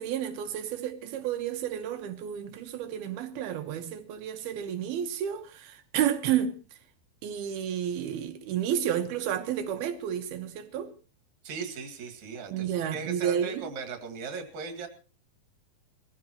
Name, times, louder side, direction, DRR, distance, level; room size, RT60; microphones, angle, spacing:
voice 1, 0.0-6.6 7.2-10.9 12.5-13.7, right 9 dB, 80° right, 3.2 m, -31 dB
voice 2, 11.4-14.9, right 5 dB, 50° right, 3.3 m, -38 dB
22.5 x 15.5 x 3.0 m
omnidirectional pair, 4.4 m